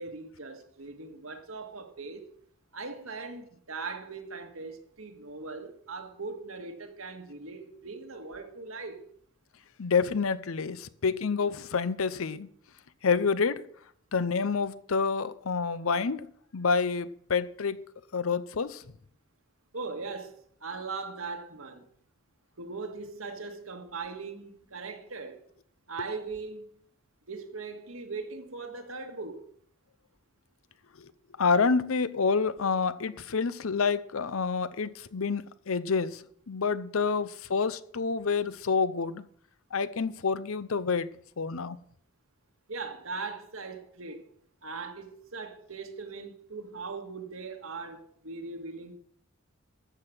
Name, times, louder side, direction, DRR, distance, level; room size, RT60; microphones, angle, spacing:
voice 1, 0.0-2.3 2.7-9.0 19.7-21.9 22.6-25.5 25.9-26.7 27.3-29.4 42.7-44.3 44.6-49.0, right 4 dB, 80° right, 1.8 m, -40 dB
voice 2, 9.8-12.5 13.0-13.6 14.1-16.3 16.5-17.8 18.1-18.8 31.0-31.1 31.4-39.3 39.7-41.1 41.4-41.8, left 5 dB, 80° left, 0.7 m, -28 dB
13.5 x 7.7 x 6.1 m
head